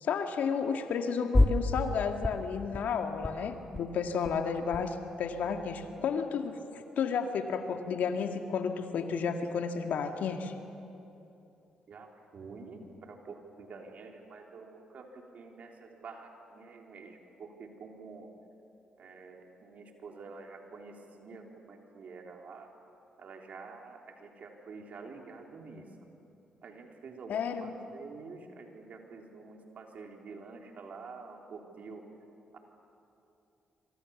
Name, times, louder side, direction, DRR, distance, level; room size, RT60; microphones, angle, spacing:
voice 1, 0.0-10.5 27.3-27.7, left 6 dB, 70° left, 5 dB, 2.0 m, -32 dB
sound 1, 1.3-2.0 2.2-2.9 3.1-3.3 3.6-3.8 4.1-4.9 5.2-6.1, left 2 dB, 15° left, 2.5 m, -29 dB
voice 2, 12.3-12.8 13.1-15.0 15.3-18.3 19.0-22.7 23.2-25.8 26.6-32.0, right 4 dB, 60° right, 1 dB, 3.9 m, -48 dB
26.5 x 26.0 x 7.3 m, 2.8 s
hypercardioid pair, 45°, 3 cm